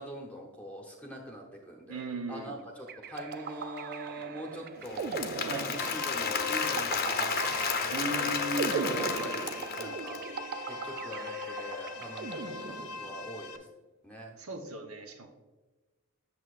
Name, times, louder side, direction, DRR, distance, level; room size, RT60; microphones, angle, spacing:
voice 1, 0.0-2.0 2.3-2.6 3.1-8.3 8.6-10.2 10.7-13.6 14.0-14.3, right 1 dB, 5° left, -1 dB, 0.9 m, -43 dB
voice 2, 1.9-2.6 5.4-5.7 7.4-9.0 14.4-15.3, right 2 dB, 75° right, 5 dB, 0.9 m, -37 dB
sound 1, 2.9-13.3, right 5 dB, 45° right, 0.4 m, -39 dB
Applause / Crowd, 4.8-10.2, left 6 dB, 45° left, 0.7 m, -32 dB
sound 2, 5.7-13.6, left 5 dB, 80° left, 0.6 m, -41 dB
8.4 x 7.1 x 2.5 m, 1.2 s
head